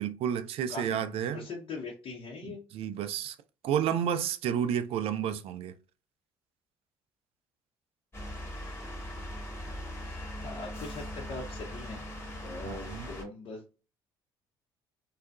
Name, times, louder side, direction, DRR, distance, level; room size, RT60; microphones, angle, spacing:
voice 1, 0.0-1.4 2.5-3.4 3.6-5.7 12.6-13.1, right 9 dB, 60° right, 0.4 m, -31 dB
voice 2, 0.7-1.0 1.3-2.6 9.6-12.1 12.4-13.6, left 3 dB, 55° left, 0.8 m, -42 dB
sound 1, 8.1-13.2, left 1 dB, 20° left, 1.1 m, -40 dB
2.7 x 2.3 x 2.3 m
hypercardioid pair, 55°, 11 cm